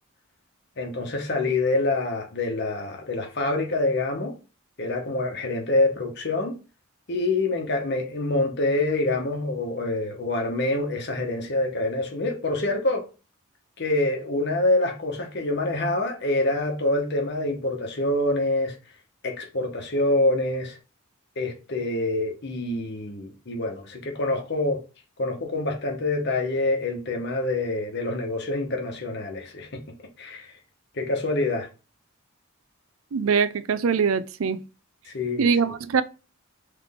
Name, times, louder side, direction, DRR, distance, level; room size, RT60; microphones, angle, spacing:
voice 1, 0.8-4.3 4.8-6.6 7.1-13.0 13.8-18.8 19.2-20.8 21.4-24.8 25.2-29.8 30.2-30.5 31.0-31.7 35.1-35.5, left 2 dB, 55° left, 1.0 m, -26 dB
voice 2, 33.1-34.6 35.4-36.0, right 6 dB, 75° right, 0.4 m, -22 dB
3.7 x 3.2 x 3.5 m
head